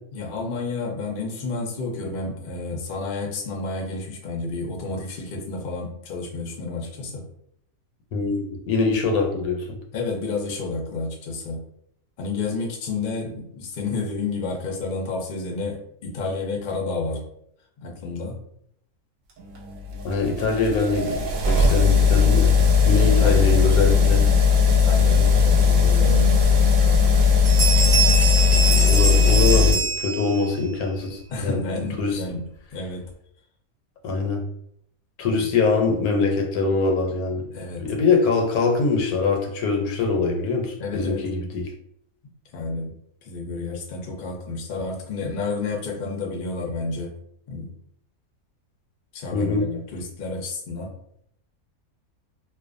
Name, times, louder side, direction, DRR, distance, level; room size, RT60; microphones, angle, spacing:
voice 1, 0.1-7.2 9.9-11.6 12.2-17.3 17.8-18.4 22.8-23.5 24.6-26.7 31.3-32.4 32.7-33.0 35.2-35.4 37.5-37.9 40.8-41.2 42.5-42.9 43.2-47.1 47.5-47.7 49.1-50.9, left 3 dB, 60° left, 0 dB, 0.5 m, -30 dB
voice 2, 8.1-9.8 20.0-22.5 22.8-24.2 28.7-31.6 32.0-32.2 34.0-34.5 35.2-37.5 37.8-41.7 49.3-49.7, left 4 dB, 90° left, 2 dB, 1.1 m, -23 dB
sound 1, 19.4-29.7, left 5 dB, 70° right, 0.9 m, -18 dB
Bell, 27.4-30.6, right 4 dB, 50° right, 0.5 m, -24 dB
2.5 x 2.2 x 2.5 m, 0.71 s
omnidirectional pair, 1.5 m